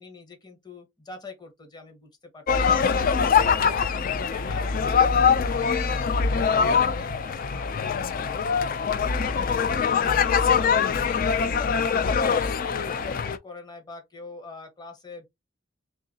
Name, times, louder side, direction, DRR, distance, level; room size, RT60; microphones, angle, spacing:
voice 1, 0.0-3.0 3.3-8.4 8.7-15.3, left 3 dB, 20° left, 1.0 m, -44 dB
sound 1, 2.5-13.4, left 6 dB, 45° left, 0.3 m, -23 dB
3.7 x 3.1 x 2.7 m
head